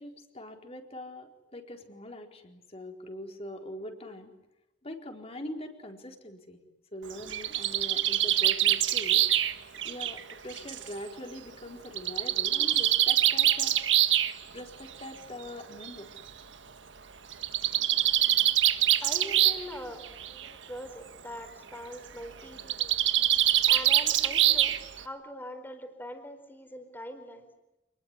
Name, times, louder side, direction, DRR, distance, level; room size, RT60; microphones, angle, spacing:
voice 1, 0.0-4.3 4.8-6.6 6.9-9.2 9.8-13.7 14.5-16.1, left 1 dB, 35° left, 3 dB, 4.2 m, -42 dB
Bird, 7.1-10.9 12.0-14.3 15.4-15.5 15.8-15.9 16.2-16.3 17.3-19.7 20.0-20.5 22.6-25.0, right 12 dB, 80° right, 1.5 m, -24 dB
voice 2, 19.0-23.0 23.7-27.5, equal, 10° left, 7 dB, 4.4 m, -43 dB
28.0 x 20.5 x 9.8 m, 0.96 s
head